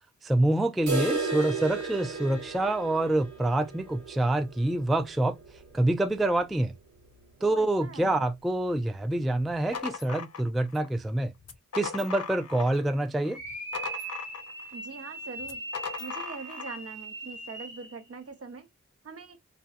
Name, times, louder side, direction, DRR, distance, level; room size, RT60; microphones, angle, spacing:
voice 1, 0.2-5.4 5.7-6.7 7.4-11.3 11.7-13.4, right 1 dB, ahead, 0.3 m, -26 dB
sound 1, 0.9-6.7 7.0-7.1 7.4-7.5 8.0-8.1 9.0-9.1, right 4 dB, 80° right, 1.1 m, -35 dB
voice 2, 7.4-8.3 14.7-15.7 16.0-18.7 19.0-19.4, right 4 dB, 55° right, 0.7 m, -42 dB
sound 2, 9.7-10.9 11.4-12.9 13.2-14.7 15.4-16.8, left 6 dB, 55° left, 0.6 m, -39 dB
sound 3, 13.3-18.0, right 2 dB, 35° right, 1.1 m, -40 dB
2.6 x 2.3 x 2.4 m
cardioid pair, 55°, 29 cm